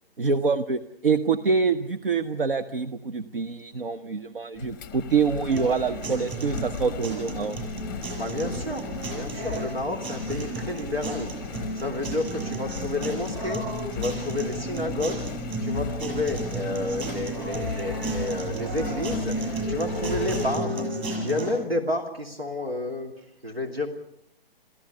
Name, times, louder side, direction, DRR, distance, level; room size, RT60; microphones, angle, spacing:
voice 1, 0.2-7.6, right 5 dB, 65° right, 9 dB, 1.0 m, -25 dB
Engine, 4.5-20.6, left 10 dB, 20° left, 0.7 m, -37 dB
sound 1, 5.5-21.5, right 2 dB, 20° right, 6.6 m, -33 dB
voice 2, 8.2-8.9 9.1-11.3 11.7-13.6 13.9-15.2 15.6-19.4 19.7-20.9 21.2-23.1 23.4-23.9, left 2 dB, 85° right, 3 dB, 2.9 m, -30 dB
28.5 x 14.5 x 6.8 m, 0.80 s
figure-of-eight pair, 130°, 30 cm